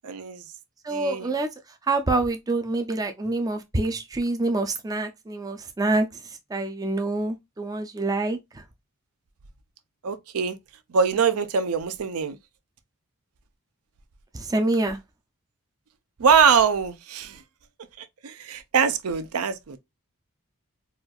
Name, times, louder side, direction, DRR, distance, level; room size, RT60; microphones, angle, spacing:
voice 1, 0.0-0.4 0.9-1.3 10.0-10.6 10.9-12.4 16.2-17.4 18.0-19.8, right 6 dB, 80° right, 0.5 m, -23 dB
voice 2, 0.8-8.6 14.3-15.0, right 2 dB, 15° right, 0.3 m, -26 dB
4.2 x 2.4 x 2.3 m
head